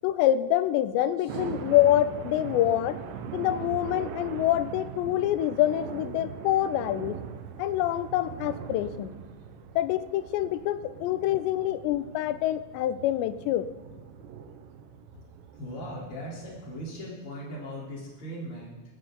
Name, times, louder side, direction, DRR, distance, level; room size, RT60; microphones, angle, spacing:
voice 1, 0.0-3.0 3.3-7.2 7.6-9.2 9.8-13.7, left 13 dB, 80° left, 13 dB, 2.8 m, -26 dB
sound 1, 1.3-17.0, right 8 dB, 80° right, 3.1 m, -41 dB
voice 2, 13.9-14.5 15.5-18.8, equal, 30° left, -4 dB, 4.2 m, -40 dB
18.5 x 15.0 x 4.0 m, 1.3 s
omnidirectional pair, 5.2 m